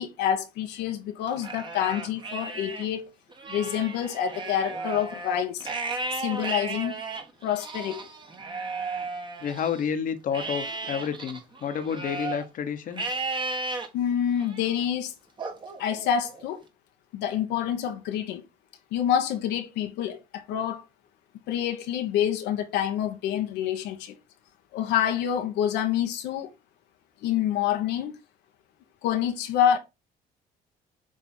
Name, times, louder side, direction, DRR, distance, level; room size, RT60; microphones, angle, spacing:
voice 1, 0.0-3.1 3.5-5.7 6.1-7.0 7.4-8.1 13.9-15.1 15.8-16.6 17.1-18.4 18.9-20.8 21.5-24.2 24.7-26.5 27.2-28.2 29.0-29.8, left 9 dB, 85° left, 1.1 m, -27 dB
Livestock farm animals working animals, 1.3-2.9 3.3-9.9 10.3-12.5 12.9-13.9 14.4-14.8 15.4-16.5, right 3 dB, 30° right, 1.5 m, -35 dB
voice 2, 9.4-13.2, left 7 dB, 50° left, 1.1 m, -30 dB
7.4 x 3.5 x 4.3 m
cardioid pair, 110°, 17 cm